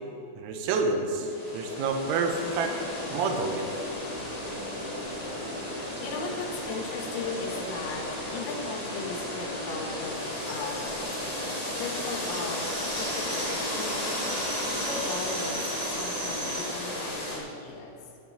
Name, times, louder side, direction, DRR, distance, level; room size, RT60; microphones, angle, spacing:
voice 1, 0.4-2.8 3.1-3.7, right 4 dB, 80° right, 5 dB, 3.8 m, -28 dB
sound 1, 1.1-17.4, left 1 dB, 20° left, 1.1 m, -33 dB
voice 2, 4.2-18.2, left 4 dB, 75° left, 2 dB, 2.8 m, -38 dB
sound 2, 7.0-7.1 7.3-7.4 7.7-16.7, right 2 dB, 50° right, 2.4 m, -41 dB
9.2 x 8.6 x 8.4 m, 2.7 s
omnidirectional pair, 6.0 m